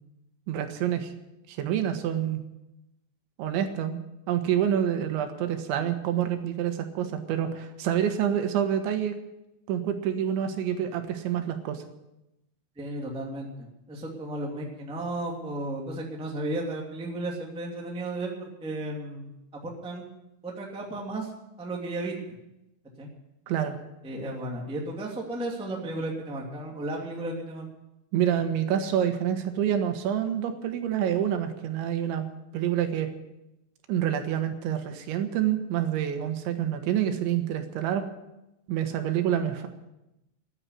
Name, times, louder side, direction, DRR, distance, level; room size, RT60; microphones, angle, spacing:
voice 1, 0.5-1.1 1.5-2.4 3.4-4.0 4.3-9.2 9.7-11.8 23.5-23.8 28.1-32.3 32.5-33.1 33.9-38.1 38.7-39.7, right 10 dB, 85° right, 7 dB, 3.7 m, -27 dB
voice 2, 12.7-20.0 20.4-21.3 21.6-22.1 23.0-23.1 24.0-27.7, right 1 dB, ahead, -1 dB, 1.2 m, -34 dB
13.5 x 10.0 x 9.6 m, 0.91 s
omnidirectional pair, 5.2 m